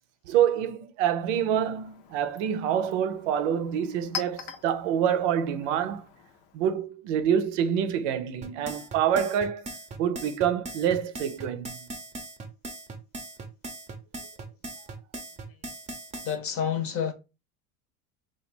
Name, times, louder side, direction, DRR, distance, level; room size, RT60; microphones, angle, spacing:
voice 1, 0.3-6.0 6.5-9.6 10.0-11.8, right 9 dB, 80° right, 0.6 m, -26 dB
Chink clink, 1.2-6.7, left 8 dB, 70° left, 0.8 m, -43 dB
sound 1, 8.4-16.4, right 2 dB, 20° right, 0.6 m, -39 dB
voice 2, 16.2-17.1, left 8 dB, 40° left, 0.8 m, -28 dB
2.9 x 2.4 x 4.2 m
supercardioid pair, 110°, 36 cm